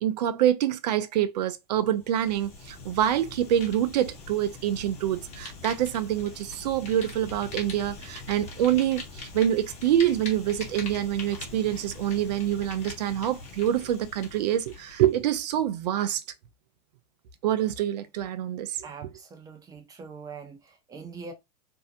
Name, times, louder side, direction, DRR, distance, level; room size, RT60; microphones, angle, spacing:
voice 1, 0.0-16.2 17.4-19.1, right 11 dB, 80° right, 0.5 m, -26 dB
Fire, 1.9-15.2, left 3 dB, 35° left, 1.0 m, -42 dB
voice 2, 18.8-21.3, right 5 dB, 15° right, 0.6 m, -43 dB
2.6 x 2.1 x 2.7 m
supercardioid pair, 130°, 21 cm